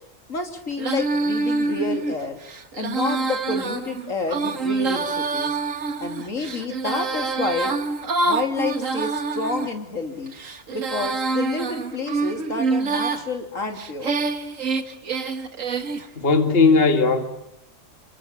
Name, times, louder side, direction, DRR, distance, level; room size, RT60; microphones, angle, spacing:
voice 1, 0.3-2.4 2.7-5.6 6.0-7.7 8.2-10.3 10.7-14.2, left 3 dB, 90° left, 3.3 m, -29 dB
Female singing, 0.8-9.7 10.3-13.2 13.8-16.1, right 3 dB, 80° right, 2.0 m, -26 dB
voice 2, 16.2-17.2, left 3 dB, 50° left, 2.1 m, -17 dB
28.0 x 23.5 x 8.8 m
omnidirectional pair, 1.3 m